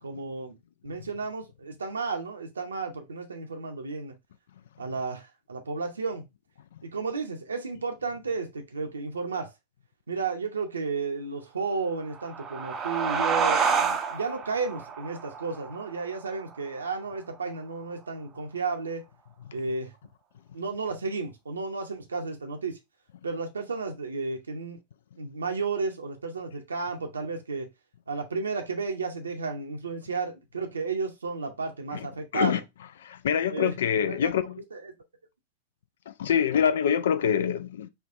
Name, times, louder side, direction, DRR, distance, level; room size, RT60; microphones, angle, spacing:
voice 1, 0.0-0.6 0.8-4.1 4.8-6.2 6.9-9.5 10.1-19.0 19.5-19.9 20.5-22.8 23.2-24.8 25.2-27.7 28.1-32.6 33.5-34.3 34.7-34.9, right 4 dB, 75° right, 0.7 m, -33 dB
sound 1, 12.0-17.2, right 6 dB, 25° right, 0.5 m, -29 dB
voice 2, 33.0-34.6 36.2-37.9, left 8 dB, 60° left, 0.3 m, -25 dB
4.4 x 2.4 x 2.5 m
figure-of-eight pair, 90°, 0 cm